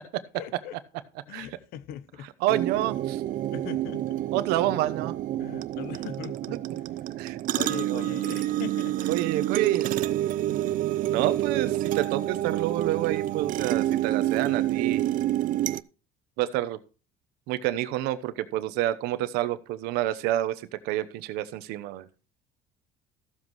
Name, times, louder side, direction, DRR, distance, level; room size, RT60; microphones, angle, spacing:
voice 1, 0.3-0.8 1.3-2.3 3.5-4.2 5.4-6.6 7.3-9.2 10.5-10.8, left 10 dB, 75° left, 0.8 m, -40 dB
voice 2, 2.4-3.2 4.3-5.1 7.2-7.4 7.8-8.1 9.1-9.9 11.1-15.1 16.4-16.8 17.5-22.1, right 14 dB, 85° right, 1.0 m, -28 dB
sound 1, 2.5-15.8, right 14 dB, 60° right, 0.5 m, -28 dB
14.0 x 7.6 x 3.1 m
cardioid pair, 105°, 16 cm